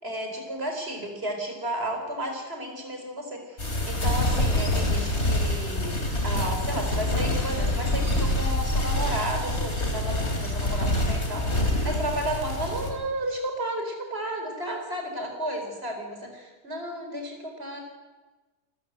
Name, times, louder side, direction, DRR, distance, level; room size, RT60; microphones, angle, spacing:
voice 1, 0.0-17.8, right 1 dB, 35° right, 3 dB, 4.7 m, -33 dB
sound 1, 3.6-12.9, left 1 dB, 40° left, 3.8 m, -26 dB
28.0 x 14.0 x 8.1 m, 1.2 s
omnidirectional pair, 1.8 m